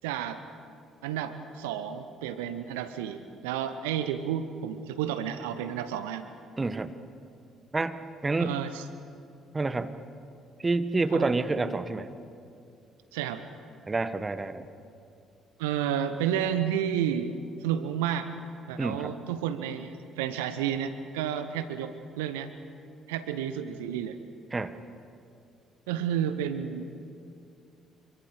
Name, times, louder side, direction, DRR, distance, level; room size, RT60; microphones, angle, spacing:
voice 1, 0.0-0.4 1.0-6.3 8.4-8.8 11.1-11.3 13.1-13.4 15.6-17.3 17.6-18.3 18.7-22.5 23.1-24.2 25.9-26.9, right 9 dB, 70° right, 10 dB, 0.9 m, -31 dB
voice 2, 6.6-6.9 7.7-8.0 8.2-8.6 9.5-9.9 10.6-12.1 13.9-14.7 18.8-19.1 24.5-24.7, right 3 dB, 25° right, 11 dB, 1.3 m, -28 dB
25.5 x 24.0 x 6.6 m, 2.5 s
figure-of-eight pair, 45°, 0 cm